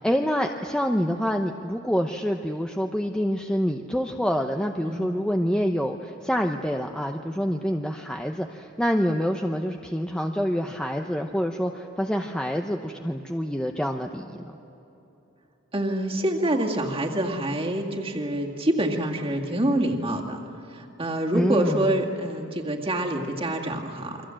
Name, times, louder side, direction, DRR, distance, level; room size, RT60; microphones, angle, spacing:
voice 1, 0.0-14.3 21.3-22.0, equal, 5° left, 3 dB, 0.8 m, -26 dB
voice 2, 15.7-20.4 20.7-24.2, right 1 dB, 30° right, 0 dB, 2.1 m, -26 dB
29.0 x 23.5 x 7.7 m, 3.0 s
head